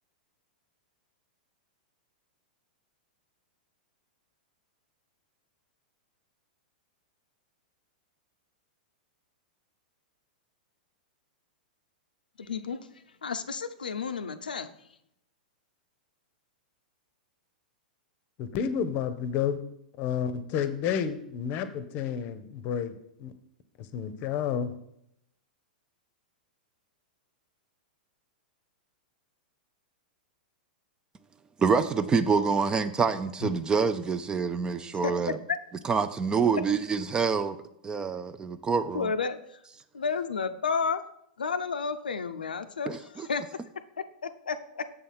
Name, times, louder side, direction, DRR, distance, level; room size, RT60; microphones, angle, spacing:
voice 1, 12.4-12.8 13.2-14.7 35.0-35.1 35.5-35.6 38.9-39.6 39.9-41.0 41.4-43.4 44.2-44.8, left 5 dB, 75° left, 10 dB, 0.5 m, -31 dB
voice 2, 18.4-19.6 20.0-23.3 23.8-24.8 33.4-33.5, left 8 dB, 40° left, 12 dB, 0.7 m, -30 dB
voice 3, 31.6-35.4 35.9-37.6 37.8-39.1 42.9-43.3, right 5 dB, 15° right, 12 dB, 0.4 m, -26 dB
6.9 x 4.2 x 5.5 m, 0.77 s
figure-of-eight pair, 100°, 5 cm